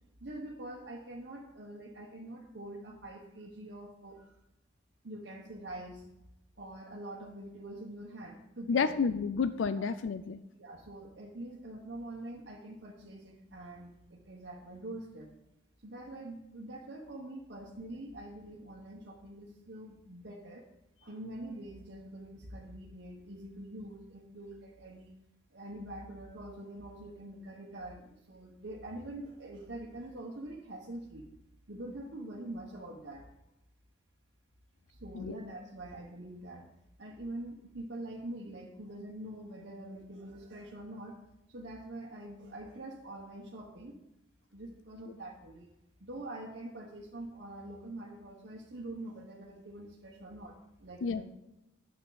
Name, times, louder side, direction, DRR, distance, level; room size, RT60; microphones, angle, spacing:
voice 1, 0.2-4.4 5.0-6.1 6.6-9.0 9.7-9.9 10.6-15.3 15.8-20.7 21.0-25.1 25.5-31.3 31.7-33.3 34.9-36.7 37.0-41.2 41.5-43.9 44.5-45.7 46.0-51.2, right 1 dB, 65° right, -3 dB, 1.1 m, -45 dB
voice 2, 8.7-10.4 35.1-35.4 51.0-51.2, left 5 dB, 85° left, 12 dB, 0.4 m, -30 dB
9.2 x 7.7 x 4.0 m, 0.90 s
head